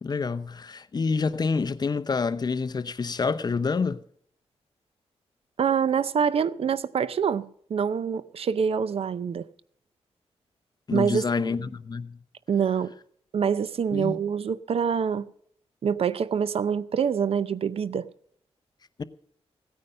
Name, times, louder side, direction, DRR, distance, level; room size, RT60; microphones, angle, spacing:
voice 1, 0.0-4.0 10.9-12.2 13.9-14.2 19.0-19.1, left 4 dB, 40° left, 0.7 m, -27 dB
voice 2, 5.6-9.4 10.9-11.5 12.5-12.9 13.3-15.3 15.8-18.1, right 7 dB, 60° right, 0.6 m, -25 dB
16.5 x 9.5 x 5.5 m
wide cardioid pair, 105°, 11 cm